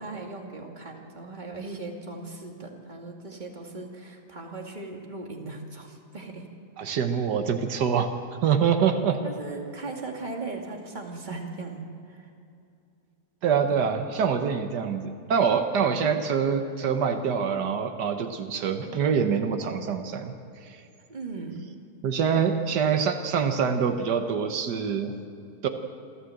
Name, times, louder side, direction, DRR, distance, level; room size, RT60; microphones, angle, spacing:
voice 1, 0.0-6.4 9.1-12.3 13.7-13.9 21.1-21.6 22.7-22.9, right 3 dB, 25° right, 0 dB, 2.5 m, -38 dB
voice 2, 6.8-8.1 8.4-9.2 13.4-20.3 22.0-25.1 25.6-25.7, right 6 dB, 80° right, 6 dB, 1.7 m, -25 dB
27.0 x 13.5 x 7.9 m, 2.6 s
omnidirectional pair, 1.8 m